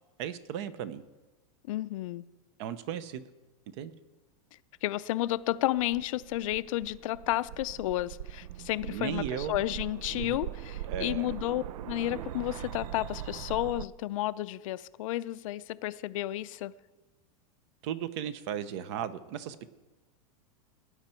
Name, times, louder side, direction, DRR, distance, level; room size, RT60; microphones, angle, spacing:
voice 1, 0.2-1.0 2.6-3.2 3.8-3.9 8.8-9.5 10.1-10.4 10.9-11.3 17.8-19.7, right 9 dB, 50° right, 14 dB, 0.8 m, -36 dB
voice 2, 1.7-2.3 4.8-16.7, left 15 dB, 60° left, 16 dB, 0.5 m, -32 dB
sound 1, 5.5-13.8, right 12 dB, 75° right, 0.5 m, -41 dB
17.0 x 9.8 x 4.4 m, 1.2 s
supercardioid pair, 160°, 19 cm